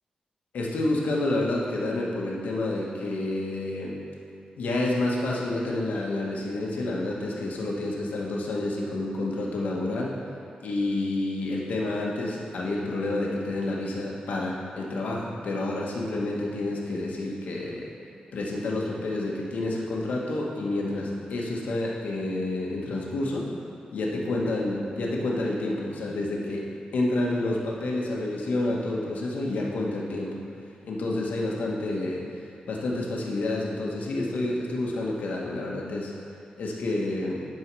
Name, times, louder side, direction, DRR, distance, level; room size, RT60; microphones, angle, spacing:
voice 1, 0.5-4.0 4.6-10.1 10.6-17.9 18.3-23.5 23.9-26.7 26.9-30.4 30.8-32.2 32.7-36.1 36.6-37.5, left 2 dB, 90° left, -2 dB, 1.5 m, -29 dB
10.5 x 4.8 x 6.2 m, 2.5 s
wide cardioid pair, 125°, 3 cm